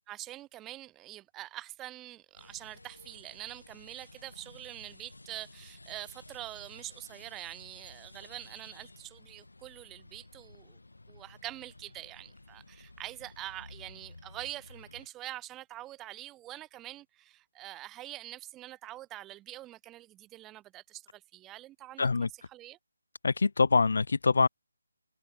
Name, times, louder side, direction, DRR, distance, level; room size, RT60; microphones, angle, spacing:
voice 1, 0.1-10.8 11.1-22.8, right 15 dB, 10° right, 2.2 m, -45 dB
sound 1, 2.4-15.1, left 2 dB, 80° left, 5.1 m, -54 dB
voice 2, 22.0-22.3 23.2-24.5, left 4 dB, 60° left, 0.4 m, -24 dB
figure-of-eight pair, 150°, 0 cm